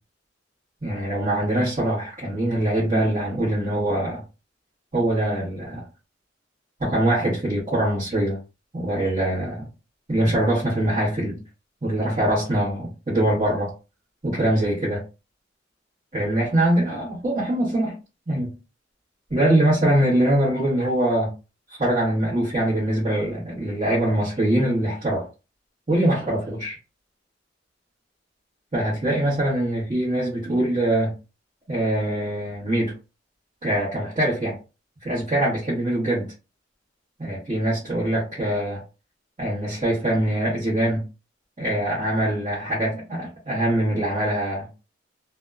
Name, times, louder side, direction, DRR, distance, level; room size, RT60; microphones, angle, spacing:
voice 1, 0.8-4.2 4.9-5.8 6.8-8.4 8.7-9.7 10.1-11.4 11.8-13.7 14.2-15.0 16.1-18.0 18.3-18.5 19.3-21.3 21.7-25.3 25.9-26.8 28.7-31.2 31.7-32.9 33.6-34.6 35.0-36.2 37.2-38.8 39.4-41.0 41.6-44.7, right 1 dB, 40° right, 1.1 m, -23 dB
2.6 x 2.2 x 2.3 m
head